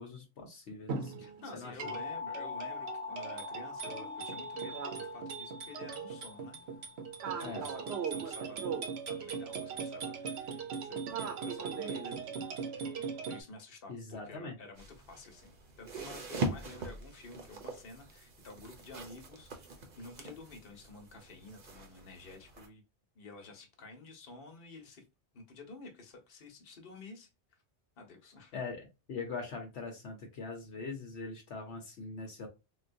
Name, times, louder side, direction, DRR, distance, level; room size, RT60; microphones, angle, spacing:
voice 1, 0.0-2.0 7.4-7.7 13.9-14.6 28.5-32.5, left 4 dB, 80° left, 2 dB, 1.0 m, -42 dB
sound 1, 0.9-13.4, right 6 dB, 75° right, 0.9 m, -39 dB
voice 2, 1.2-6.6 7.2-8.6 9.1-11.0 11.4-12.2 13.3-22.8 23.1-25.0 25.3-27.6 28.0-28.6, left 3 dB, 60° left, 3 dB, 1.1 m, -51 dB
sound 2, 1.8-7.3, left 4 dB, 20° right, 0.4 m, -43 dB
sound 3, 14.8-22.7, right 2 dB, 45° right, 0.7 m, -42 dB
3.9 x 2.3 x 2.5 m, 0.27 s
omnidirectional pair, 1.1 m